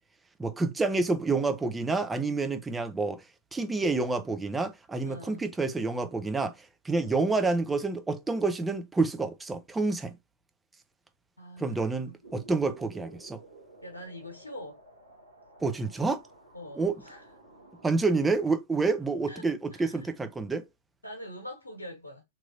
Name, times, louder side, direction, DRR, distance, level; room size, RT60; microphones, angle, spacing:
voice 1, 0.4-3.2 3.5-6.5 6.8-10.1 11.6-13.4 15.6-16.2 16.7-17.0 17.8-20.6, right 3 dB, 10° right, 0.7 m, -28 dB
voice 2, 5.0-5.4 7.1-7.2 11.4-12.2 13.8-14.8 16.5-17.2 19.3-20.1 21.0-22.2, equal, 90° left, 1.0 m, -44 dB
sound 1, 12.2-18.4, right 2 dB, 80° right, 1.9 m, -53 dB
3.8 x 3.1 x 2.6 m
figure-of-eight pair, 105°, 0 cm